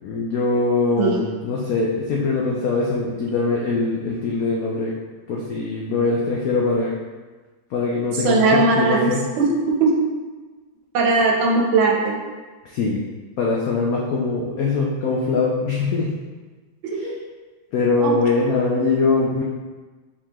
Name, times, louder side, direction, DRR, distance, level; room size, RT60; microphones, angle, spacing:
voice 1, 0.0-4.9 5.3-6.9 7.7-9.2 12.6-13.0 13.4-16.1 17.7-19.4, left 3 dB, 80° left, -3 dB, 0.7 m, -22 dB
voice 2, 8.2-9.1 9.4-9.5 9.8-9.9 10.9-12.2 16.8-17.1 18.0-18.1, right 3 dB, 80° right, -1 dB, 1.6 m, -18 dB
4.6 x 3.6 x 2.9 m, 1.3 s
omnidirectional pair, 2.1 m